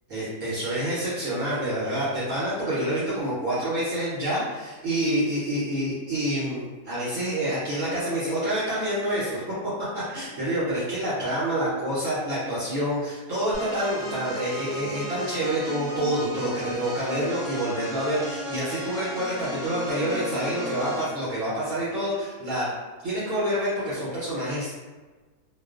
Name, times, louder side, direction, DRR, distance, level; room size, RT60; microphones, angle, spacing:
voice 1, 0.1-9.4 9.9-22.7 23.0-24.8, right 1 dB, 65° right, -9 dB, 0.9 m, -27 dB
sound 1, 13.5-21.1, right 1 dB, 10° right, 0.8 m, -35 dB
2.4 x 2.3 x 2.3 m, 1.3 s
omnidirectional pair, 1.7 m